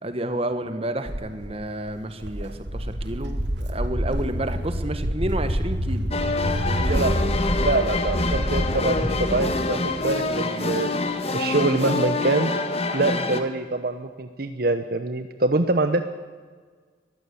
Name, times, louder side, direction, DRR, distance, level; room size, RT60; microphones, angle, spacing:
voice 1, 0.0-6.1, right 1 dB, 30° right, 9 dB, 1.5 m, -30 dB
Walk footsteps, 1.1-8.8, equal, 75° right, 2.1 m, -27 dB
sound 1, 6.1-13.4, left 2 dB, 35° left, 1.5 m, -26 dB
voice 2, 6.9-10.9 11.3-12.5 12.9-16.0, right 2 dB, 55° right, 9 dB, 1.0 m, -25 dB
sound 2, 9.0-11.5, equal, 5° right, 2.2 m, -35 dB
21.5 x 15.0 x 8.6 m, 1.6 s
head